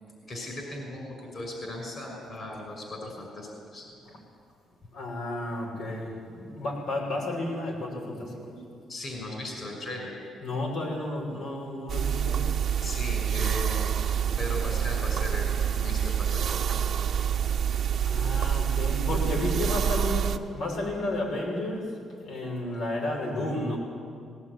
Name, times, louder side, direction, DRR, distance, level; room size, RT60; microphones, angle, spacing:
voice 1, 0.2-3.9 8.9-10.2 12.8-13.8 14.2-16.5, left 1 dB, 40° left, 1 dB, 5.9 m, -37 dB
voice 2, 4.9-8.6 10.4-12.5 18.0-21.9 22.2-23.8, left 1 dB, 75° left, -1 dB, 6.8 m, -32 dB
sound 1, 11.9-20.4, right 8 dB, 55° right, 1.2 m, -27 dB
19.0 x 18.5 x 9.6 m, 2.2 s
cardioid pair, 90°, 0 cm